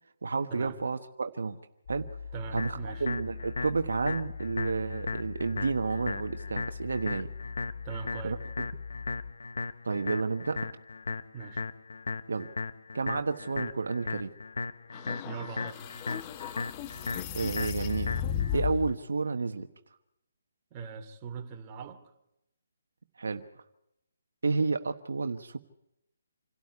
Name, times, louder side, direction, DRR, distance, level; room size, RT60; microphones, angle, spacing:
voice 1, 0.2-1.6 1.9-2.1 2.5-7.3 8.2-8.4 9.8-10.7 12.3-12.5 12.9-14.3 17.3-18.1 18.5-19.7 23.2-23.4 24.4-25.6, right 4 dB, 80° right, 8 dB, 1.2 m, -31 dB
sound 1, 1.9-9.3, left 5 dB, 50° left, 1.2 m, -42 dB
voice 2, 2.3-3.1 7.8-8.4 11.3-11.6 15.2-15.9 20.7-22.0, right 5 dB, 25° right, 4 dB, 2.8 m, -41 dB
sound 2, 2.6-18.6, left 3 dB, 80° left, 0.9 m, -37 dB
sound 3, 14.9-19.0, left 9 dB, 25° left, 1.0 m, -35 dB
27.5 x 12.5 x 9.7 m, 0.85 s
hypercardioid pair, 150°, 0 cm